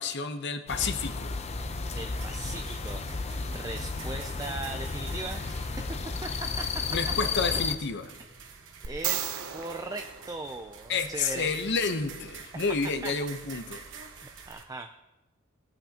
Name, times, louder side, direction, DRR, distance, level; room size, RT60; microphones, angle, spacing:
voice 1, 0.0-1.4 6.9-8.2 10.9-13.8, left 4 dB, 55° left, 8 dB, 0.9 m, -30 dB
sound 1, 0.7-7.8, left 4 dB, 30° left, 0.6 m, -33 dB
voice 2, 1.9-6.8 7.4-7.6 8.2-8.3 8.8-11.5 12.8-13.1 13.7-13.8 14.5-14.9, right 2 dB, 15° right, 6 dB, 0.4 m, -39 dB
sound 2, 2.1-14.6, right 5 dB, 60° right, 1.2 m, -48 dB
sound 3, 8.8-11.1 14.5-14.6, right 10 dB, 90° right, 0.7 m, -35 dB
17.5 x 8.8 x 2.9 m, 1.1 s
head